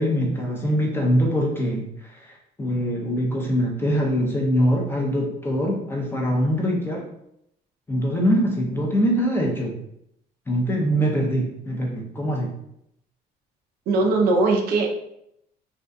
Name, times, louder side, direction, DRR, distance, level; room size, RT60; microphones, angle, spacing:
voice 1, 0.0-7.0 7.9-9.8 10.5-12.5, equal, 15° left, -1 dB, 0.5 m, -23 dB
voice 2, 13.9-14.9, right 3 dB, 65° right, 1 dB, 0.5 m, -20 dB
2.6 x 2.4 x 2.2 m, 0.77 s
cardioid pair, 110°, 17 cm